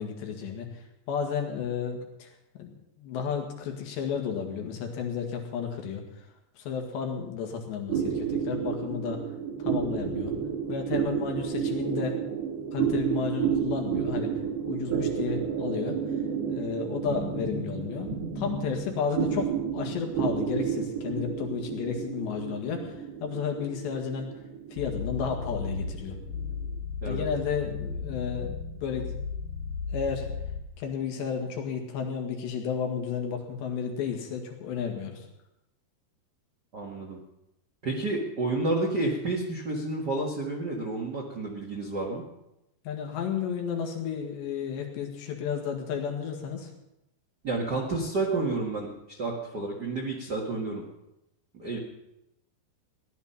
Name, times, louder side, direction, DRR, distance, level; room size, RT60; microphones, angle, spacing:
voice 1, 0.0-6.3 6.6-9.2 9.6-10.3 10.7-12.2 12.7-14.3 14.6-16.0 16.5-24.3 24.7-26.2 27.1-29.1 29.9-30.3 30.8-35.3 42.9-46.7, left 6 dB, 85° left, 2 dB, 4.2 m, -32 dB
sound 1, 7.9-26.7, right 7 dB, 70° right, 3.6 m, -31 dB
sound 2, 24.8-30.6, left 5 dB, 60° left, 4.2 m, -35 dB
voice 2, 36.7-37.2 37.8-42.2 47.4-48.9 49.2-50.8 51.5-51.8, right 2 dB, 50° right, -2 dB, 1.1 m, -30 dB
17.0 x 11.0 x 5.7 m, 0.87 s
omnidirectional pair, 4.9 m